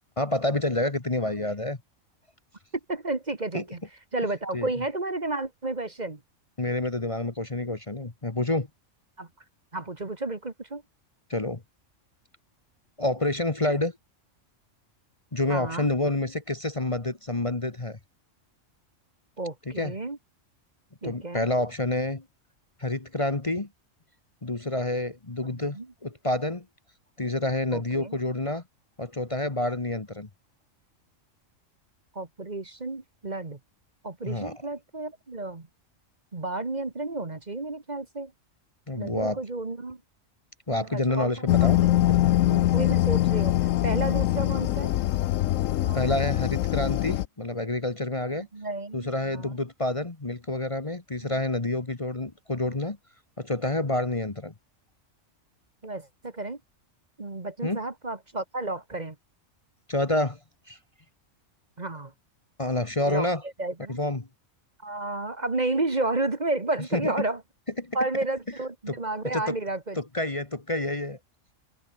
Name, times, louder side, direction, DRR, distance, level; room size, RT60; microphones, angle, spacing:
voice 1, 0.2-1.8 3.5-3.6 4.5-4.7 6.6-8.7 11.3-11.6 13.0-13.9 15.3-18.0 19.7-19.9 21.0-22.2 22.8-23.7 24.4-26.6 27.2-28.6 29.0-30.3 34.2-34.5 38.9-39.4 40.7-42.6 45.9-48.5 48.9-53.0 53.4-54.5 57.6-57.8 59.9-60.4 60.7-60.8 62.6-63.4 63.9-64.3 66.9-67.1 67.8-68.0 68.9-69.0 69.3-69.6 70.0-71.2, left 2 dB, 25° left, 1.5 m, -28 dB
voice 2, 2.9-3.8 4.1-6.2 9.2-9.3 9.7-10.8 15.5-15.9 19.4-20.2 21.0-21.5 25.5-25.9 27.7-28.2 32.2-33.6 34.0-35.7 36.3-38.3 39.0-40.0 40.7-42.0 42.7-45.0 45.8-46.2 48.3-49.6 51.2-51.4 55.8-56.6 57.2-59.2 61.8-62.1 63.0-63.3 63.6-64.0 64.8-67.4 67.9-70.0, right 2 dB, 35° right, 1.8 m, -32 dB
sound 1, 41.5-47.2, left 14 dB, 85° left, 1.0 m, -23 dB
omnidirectional pair, 1.3 m